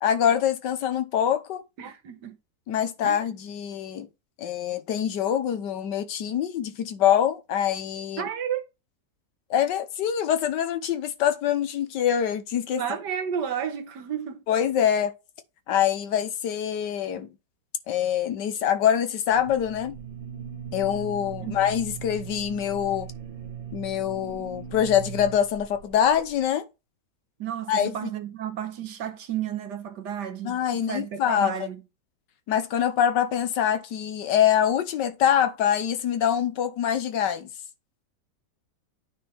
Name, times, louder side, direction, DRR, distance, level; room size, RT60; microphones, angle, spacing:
voice 1, 0.0-1.6 2.7-4.1 4.4-8.2 9.5-12.8 14.5-15.1 15.7-17.3 17.9-20.0 20.7-23.1 23.7-26.7 27.7-28.1 30.4-31.7 32.5-37.5, left 9 dB, 80° left, 1.5 m, -24 dB
voice 2, 1.8-2.4 3.0-3.2 8.2-8.7 12.8-14.4 21.4-21.5 27.4-31.8, right 9 dB, 75° right, 1.6 m, -32 dB
sound 1, 19.3-26.5, right 8 dB, 45° right, 1.7 m, -39 dB
9.1 x 3.6 x 4.4 m
omnidirectional pair, 1.9 m